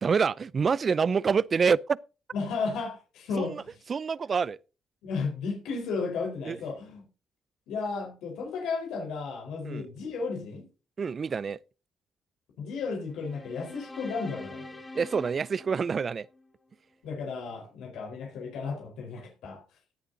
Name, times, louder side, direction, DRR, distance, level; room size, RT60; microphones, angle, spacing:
voice 1, 0.0-2.0 3.4-3.6 3.9-4.6 6.4-6.6 9.6-9.9 11.0-11.6 14.9-16.3, right 5 dB, 40° right, 0.5 m, -26 dB
voice 2, 2.3-3.7 5.0-7.0 7.7-10.6 12.6-14.8 17.0-19.6, left 4 dB, 85° left, 4.3 m, -34 dB
sound 1, 13.1-16.5, left 2 dB, 20° left, 2.4 m, -44 dB
16.5 x 10.5 x 2.7 m
cardioid pair, 90°, 0 cm